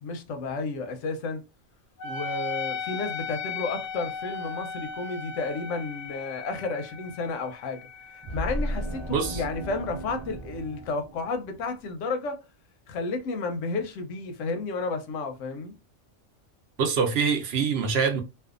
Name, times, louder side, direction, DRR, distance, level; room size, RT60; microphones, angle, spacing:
voice 1, 0.0-1.4 2.0-7.9 8.1-12.4 12.9-15.7, left 3 dB, 85° left, 0.9 m, -32 dB
Wind instrument woodwind instrument, 2.0-10.9, left 5 dB, 50° left, 0.6 m, -38 dB
sound 1, 8.2-11.7, equal, 30° right, 0.6 m, -35 dB
voice 2, 9.1-9.4 16.8-18.2, right 6 dB, 65° right, 0.8 m, -24 dB
2.6 x 2.3 x 2.4 m
omnidirectional pair, 1.3 m